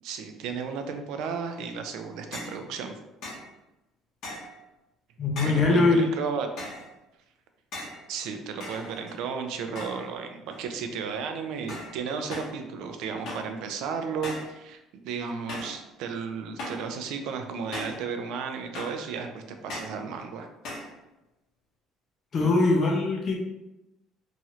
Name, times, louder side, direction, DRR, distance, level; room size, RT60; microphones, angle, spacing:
voice 1, 0.0-3.0 5.4-6.5 8.1-20.5, right 6 dB, 75° right, 6 dB, 0.4 m, -34 dB
sound 1, 2.3-2.6 3.2-3.5 4.2-4.6 5.4-5.7 6.6-6.9 7.7-8.0 8.6-9.3 9.8-10.1 10.5-10.9 11.7-12.0 12.3-12.6 13.3-13.6 14.2-14.6 15.5-15.8 16.6-16.9 17.7-18.1 18.7-19.1 19.7-20.0 20.6-20.9, left 1 dB, 65° left, 0.9 m, -38 dB
voice 2, 5.2-6.1 22.3-23.4, left 3 dB, 35° left, 0 dB, 0.5 m, -22 dB
3.0 x 2.4 x 2.8 m, 0.94 s
cardioid pair, 135°, 0 cm